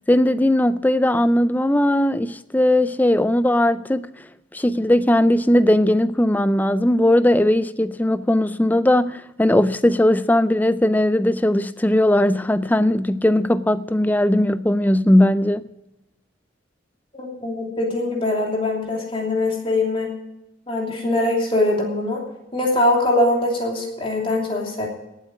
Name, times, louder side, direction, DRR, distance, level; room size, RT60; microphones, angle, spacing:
voice 1, 0.1-4.1 4.5-15.6, left 1 dB, 10° left, 0.4 m, -18 dB
voice 2, 17.1-20.1 20.7-22.2 22.5-24.9, left 2 dB, 25° left, 3.0 m, -22 dB
18.0 x 8.1 x 6.1 m
head